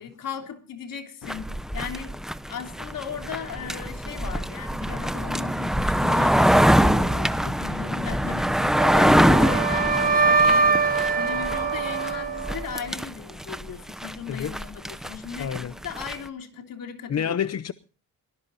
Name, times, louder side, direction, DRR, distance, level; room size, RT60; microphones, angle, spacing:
voice 1, 0.0-17.4, left 7 dB, 70° left, 3.3 m, -37 dB
sound 1, 1.3-16.1, equal, ahead, 0.8 m, -24 dB
Wind instrument woodwind instrument, 8.8-12.9, right 4 dB, 25° right, 1.3 m, -23 dB
voice 2, 15.4-15.7 17.1-17.7, left 8 dB, 45° left, 0.8 m, -28 dB
23.0 x 19.5 x 2.7 m
cardioid pair, 110°, 35 cm